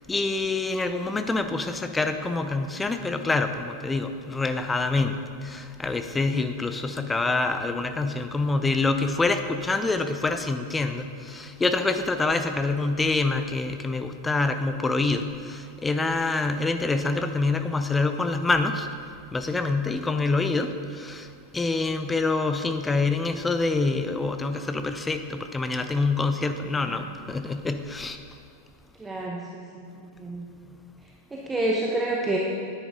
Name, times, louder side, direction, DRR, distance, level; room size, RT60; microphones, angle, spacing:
voice 1, 0.1-18.9 19.3-21.3 21.5-28.2, left 3 dB, 10° left, 8 dB, 0.5 m, -26 dB
voice 2, 29.0-30.5 31.3-32.4, right 2 dB, 10° right, -2 dB, 0.9 m, -29 dB
10.0 x 9.8 x 3.8 m, 2.3 s
figure-of-eight pair, 90°, 0 cm